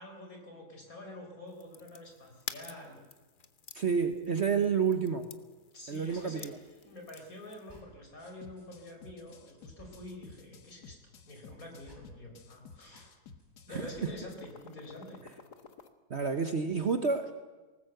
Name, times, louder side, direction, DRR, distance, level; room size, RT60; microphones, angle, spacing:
voice 1, 0.0-3.0 5.7-6.6 6.8-11.0 11.3-13.1 13.7-15.2, left 1 dB, 55° left, 3 dB, 4.6 m, -47 dB
sound 1, 1.5-7.8, left 6 dB, 40° left, 0.9 m, -50 dB
voice 2, 3.7-5.3 5.9-6.6 13.7-14.1 16.1-17.3, right 5 dB, 45° right, 8 dB, 1.2 m, -29 dB
sound 2, 6.1-8.7 9.3-13.1 13.4-14.4, equal, 15° left, 4.2 m, -59 dB
sound 3, 8.2-15.9, left 5 dB, 70° left, 1.8 m, -53 dB
19.5 x 18.5 x 7.9 m, 1.2 s
omnidirectional pair, 1.8 m